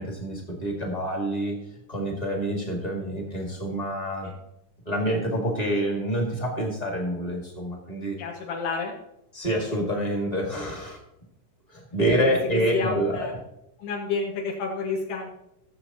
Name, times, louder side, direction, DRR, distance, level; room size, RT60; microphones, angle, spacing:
voice 1, 0.0-1.6 1.9-4.3 4.8-8.2 9.3-11.0 11.7-13.3, right 1 dB, 20° left, -1 dB, 1.2 m, -27 dB
voice 2, 8.2-8.9 12.2-12.3 12.7-13.3 13.8-15.3, left 4 dB, 80° left, -2 dB, 3.0 m, -30 dB
16.5 x 7.3 x 2.9 m, 0.82 s
omnidirectional pair, 4.0 m